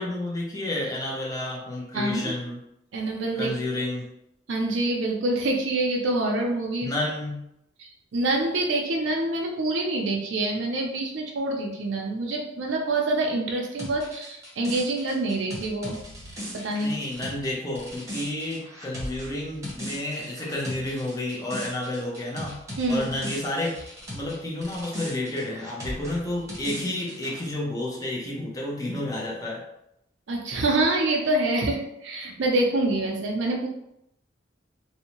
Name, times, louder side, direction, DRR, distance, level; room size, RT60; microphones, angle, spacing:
voice 1, 0.0-2.6 3.4-4.1 6.8-7.4 16.8-22.6 22.9-23.8 24.1-29.6, left 1 dB, 20° left, -3 dB, 0.6 m, -30 dB
voice 2, 1.9-2.3 2.9-3.5 4.5-6.9 7.8-16.0 16.5-16.9 22.8-23.1 30.3-33.7, right 2 dB, 70° right, 0 dB, 0.5 m, -26 dB
sound 1, 13.8-24.4 24.6-27.5, equal, 15° right, 0.9 m, -38 dB
2.6 x 2.1 x 2.9 m, 0.81 s
head